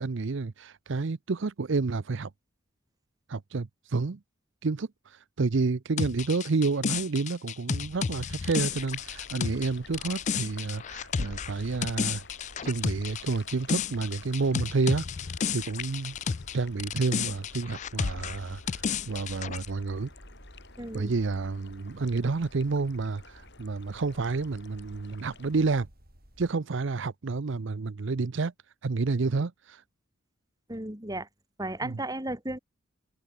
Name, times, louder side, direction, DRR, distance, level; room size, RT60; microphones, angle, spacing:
voice 1, 0.0-2.3 3.3-4.2 4.6-12.2 12.6-15.1 15.5-16.2 16.5-20.1 20.9-25.9 26.4-28.5 28.8-29.8 31.8-32.0, right 4 dB, 65° right, 0.6 m, -29 dB
sound 1, 6.0-16.5 16.8-19.7, left 6 dB, 35° left, 0.4 m, -32 dB
sound 2, 8.6-26.5, equal, 50° right, 7.0 m, -53 dB
sound 3, 8.7-25.7, left 5 dB, 60° left, 6.6 m, -53 dB
voice 2, 20.8-21.1 30.7-31.3 31.6-32.6, right 1 dB, 20° right, 6.0 m, -34 dB
open air
head